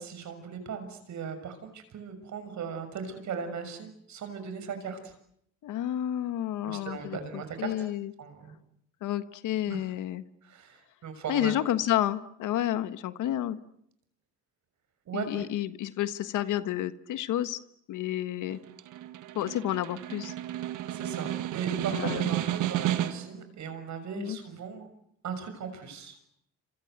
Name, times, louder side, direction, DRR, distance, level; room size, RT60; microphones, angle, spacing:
voice 1, 0.0-5.1 6.6-7.7 8.2-8.6 9.7-9.8 10.4-11.5 15.0-15.5 20.9-24.9 25.2-26.2, right 6 dB, 70° right, 9 dB, 6.6 m, -38 dB
voice 2, 5.6-8.1 9.0-10.2 11.3-13.6 15.1-17.6 17.9-18.6 19.3-20.3 21.9-22.2 24.2-24.4, left 12 dB, 85° left, 12 dB, 1.5 m, -30 dB
Snare drum, 18.5-23.4, right 13 dB, 85° right, 1.5 m, -32 dB
28.0 x 25.5 x 8.2 m, 0.74 s
cardioid pair, 90°, 30 cm